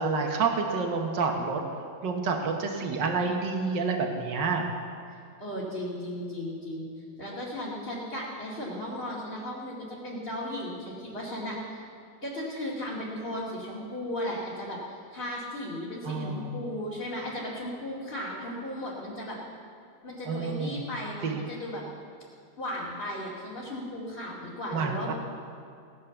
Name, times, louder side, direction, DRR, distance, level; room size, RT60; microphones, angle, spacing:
voice 1, 0.0-1.6 2.0-4.7 16.0-16.6 20.3-20.9 21.2-21.4 24.7-25.1, right 4 dB, 75° right, 3 dB, 2.1 m, -28 dB
voice 2, 5.4-6.9 7.2-11.8 12.2-19.4 20.0-21.8 22.6-25.1, left 1 dB, 30° left, -8 dB, 2.6 m, -36 dB
17.5 x 9.7 x 7.1 m, 2.4 s
omnidirectional pair, 1.9 m